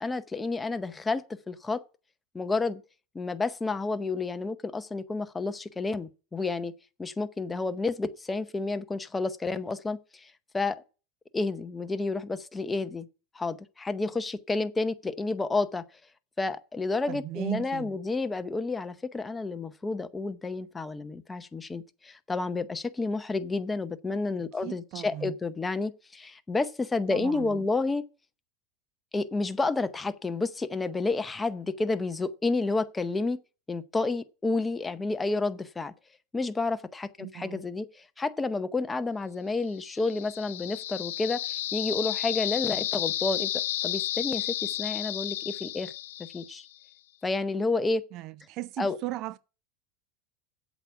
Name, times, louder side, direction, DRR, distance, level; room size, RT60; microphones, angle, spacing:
voice 1, 0.0-1.8 2.3-2.8 3.1-6.7 7.0-10.8 11.3-13.1 13.3-15.8 16.4-28.0 29.1-33.4 33.7-35.9 36.3-41.4 41.7-45.9 46.2-46.6 47.2-48.0 48.8-49.0, left 3 dB, 10° left, 0.7 m, -30 dB
voice 2, 17.1-17.9 24.6-25.3 27.1-27.6 37.2-37.6 48.1-49.4, right 16 dB, 50° right, 0.4 m, -36 dB
sound 1, 39.8-46.7, left 13 dB, 90° left, 0.7 m, -32 dB
8.2 x 8.2 x 5.8 m
supercardioid pair, 135°, 0 cm